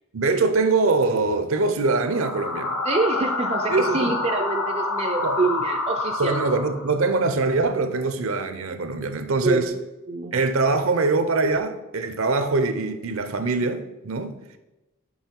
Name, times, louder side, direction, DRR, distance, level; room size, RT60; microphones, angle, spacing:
voice 1, 0.1-2.7 3.7-4.1 5.2-5.4 6.2-9.7 10.3-14.4, right 3 dB, 65° right, 0.6 m, -23 dB
sound 1, 2.0-7.1, left 2 dB, 85° left, 1.2 m, -27 dB
voice 2, 2.8-6.5 9.4-10.3, right 3 dB, 30° right, 0.4 m, -26 dB
5.6 x 5.1 x 4.5 m
head